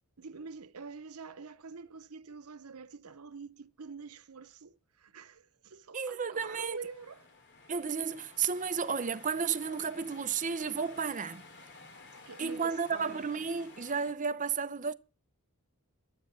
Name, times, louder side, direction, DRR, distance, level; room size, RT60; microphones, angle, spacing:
voice 1, 0.2-7.3 12.2-13.3, right 5 dB, 85° right, 0.9 m, -46 dB
voice 2, 5.9-6.8 7.7-11.4 12.4-14.9, right 6 dB, 35° right, 0.7 m, -33 dB
sound 1, 6.3-14.1, left 3 dB, 55° left, 2.8 m, -54 dB
12.0 x 8.3 x 7.5 m
head